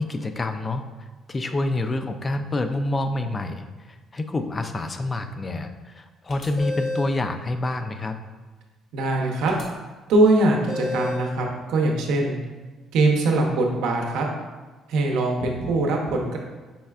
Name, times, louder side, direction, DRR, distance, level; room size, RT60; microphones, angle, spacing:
voice 1, 0.0-8.2, left 2 dB, 25° left, 7 dB, 0.3 m, -28 dB
sound 1, 6.3-7.2 9.5-9.6 10.7-11.3, left 2 dB, 45° left, 0.9 m, -30 dB
voice 2, 8.9-9.5 10.1-12.4 12.9-14.2 14.9-16.4, right 2 dB, 90° right, 1 dB, 0.7 m, -22 dB
5.4 x 3.2 x 2.4 m, 1.3 s
cardioid pair, 130°, 0 cm